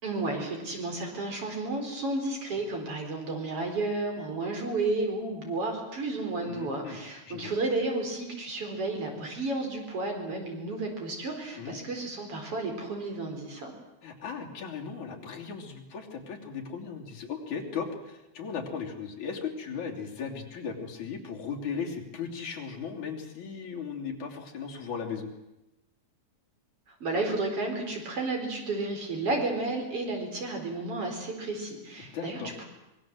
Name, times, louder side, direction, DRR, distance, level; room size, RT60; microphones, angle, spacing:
voice 1, 0.0-13.7 27.0-32.6, right 2 dB, 50° right, 2 dB, 5.2 m, -32 dB
voice 2, 6.4-7.0 7.3-7.5 11.6-11.8 14.0-25.3 32.1-32.5, left 6 dB, 75° left, 0 dB, 4.5 m, -37 dB
25.0 x 21.5 x 7.7 m, 0.91 s
omnidirectional pair, 3.4 m